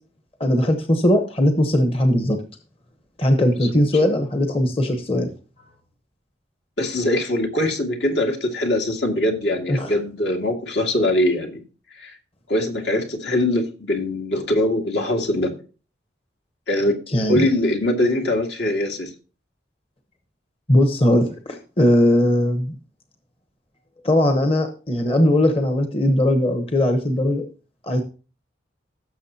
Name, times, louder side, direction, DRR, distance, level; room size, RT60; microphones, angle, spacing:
voice 1, 0.4-2.4 3.2-5.3 9.7-9.9 17.1-17.5 20.7-22.7 24.0-27.4 27.9-28.0, left 1 dB, 30° left, 5 dB, 1.0 m, -19 dB
voice 2, 3.6-4.2 6.8-11.6 12.0-12.2 12.5-15.6 16.7-17.0 17.3-19.1, left 1 dB, 70° left, 2 dB, 2.0 m, -22 dB
16.5 x 6.9 x 2.8 m, 0.35 s
head